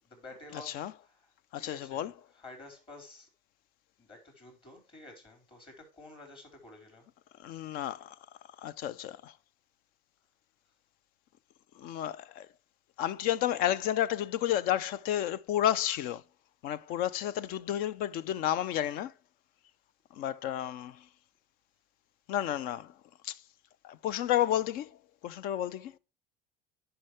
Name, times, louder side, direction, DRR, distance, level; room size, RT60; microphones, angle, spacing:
voice 1, 0.0-3.3 4.0-7.1, left 2 dB, 30° left, 4.2 m, -51 dB
voice 2, 0.5-0.9 1.5-2.1 7.4-8.1 8.6-9.3 11.8-12.5 13.0-16.2 16.6-19.1 20.1-21.0 22.3-22.9 23.2-23.4 23.8-25.0 25.2-26.0, left 11 dB, 65° left, 0.6 m, -31 dB
10.0 x 5.7 x 4.9 m
supercardioid pair, 115°, 17 cm